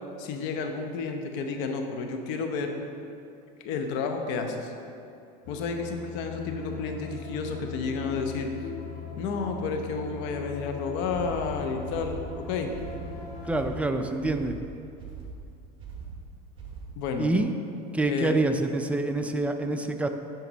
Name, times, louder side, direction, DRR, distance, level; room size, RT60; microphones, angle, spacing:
voice 1, 0.2-2.8 3.6-4.7 5.5-8.5 9.2-12.7 17.0-17.3 18.1-18.4, left 4 dB, 60° left, 4 dB, 0.9 m, -31 dB
sound 1, 5.4-13.8, left 6 dB, 45° left, 1.1 m, -39 dB
sound 2, 11.1-17.2, right 5 dB, 25° right, 1.4 m, -42 dB
voice 2, 13.5-14.6 17.2-17.5 17.9-20.1, right 2 dB, 5° right, 6 dB, 0.4 m, -26 dB
10.0 x 4.2 x 4.0 m, 2.6 s
hypercardioid pair, 100°, 21 cm